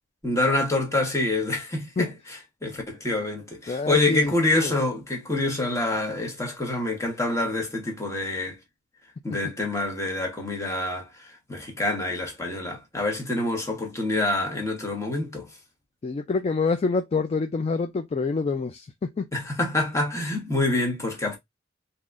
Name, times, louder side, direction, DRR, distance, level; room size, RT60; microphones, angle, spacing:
voice 1, 0.2-8.6 9.2-11.1 11.5-15.5 19.3-21.4, left 2 dB, 15° left, 1.2 m, -26 dB
voice 2, 3.7-4.7 16.0-19.3, left 4 dB, 35° left, 0.3 m, -27 dB
3.8 x 2.8 x 2.4 m
head